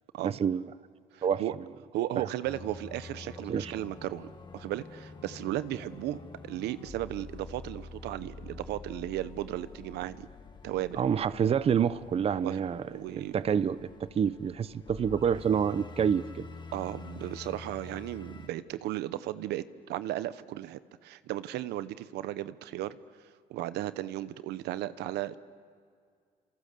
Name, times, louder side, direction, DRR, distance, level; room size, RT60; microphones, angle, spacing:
voice 1, 0.2-0.7 1.2-1.4 3.5-3.7 11.0-12.8 13.1-13.8 14.2-16.5, right 7 dB, 35° right, 16 dB, 0.7 m, -27 dB
voice 2, 1.1-1.5 1.9-6.2 6.4-10.3 10.6-11.0 12.4-12.6 12.9-13.4 16.7-22.9 23.5-25.4, right 14 dB, 80° right, 14 dB, 0.9 m, -35 dB
sound 1, 2.4-18.5, left 4 dB, 25° left, 1.5 m, -47 dB
30.0 x 27.5 x 6.7 m, 2.1 s
cardioid pair, 110°, 17 cm